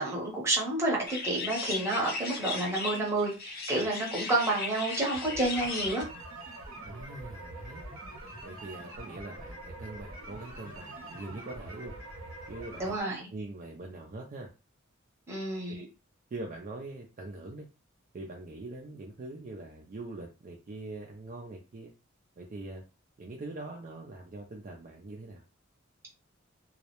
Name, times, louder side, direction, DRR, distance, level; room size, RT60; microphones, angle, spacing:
voice 1, 0.0-6.0 12.8-13.3 15.3-15.8, right 2 dB, 15° right, -3 dB, 0.8 m, -30 dB
sound 1, 1.1-6.0, left 4 dB, 50° left, 0.6 m, -37 dB
sound 2, 5.1-13.0, right 1 dB, 80° right, 0.9 m, -44 dB
voice 2, 6.8-7.8 8.4-11.9 12.5-12.8 13.3-14.5 15.7-15.9 16.3-17.7 18.1-21.9 22.4-22.8 23.2-25.4, right 2 dB, 40° right, 0 dB, 0.4 m, -43 dB
2.3 x 2.0 x 2.9 m, 0.31 s
head